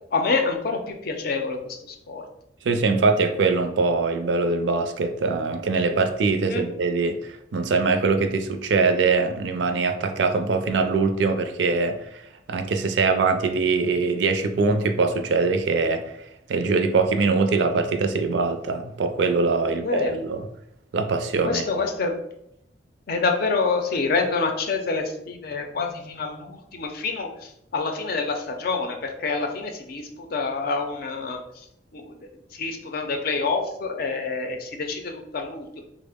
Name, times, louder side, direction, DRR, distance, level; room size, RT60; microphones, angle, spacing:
voice 1, 0.1-1.7 2.1-2.2 6.5-6.6 19.8-20.1 21.4-22.1 23.1-27.3 27.7-31.4 31.9-32.1 32.5-35.6, left 4 dB, 55° left, 4 dB, 0.5 m, -27 dB
voice 2, 2.6-12.2 12.5-16.0 16.5-20.4 20.9-21.8, right 4 dB, 75° right, 7 dB, 0.4 m, -23 dB
3.6 x 2.0 x 3.4 m, 0.78 s
head